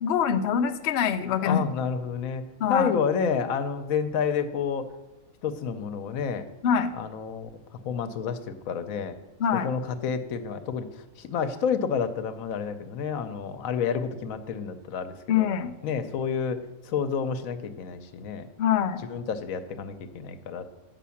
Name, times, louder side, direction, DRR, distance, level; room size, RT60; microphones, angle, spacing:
voice 1, 0.0-1.7 2.6-2.9 6.6-6.9 9.4-9.7 15.3-15.7 18.6-19.0, left 8 dB, 60° left, 7 dB, 0.8 m, -24 dB
voice 2, 1.4-2.4 2.7-4.9 5.4-6.5 7.0-7.5 7.8-9.2 9.5-10.9 11.2-15.5 15.8-18.5 19.1-20.7, left 6 dB, 85° left, 10 dB, 1.1 m, -29 dB
8.4 x 5.6 x 7.0 m, 1.1 s
omnidirectional pair, 1.4 m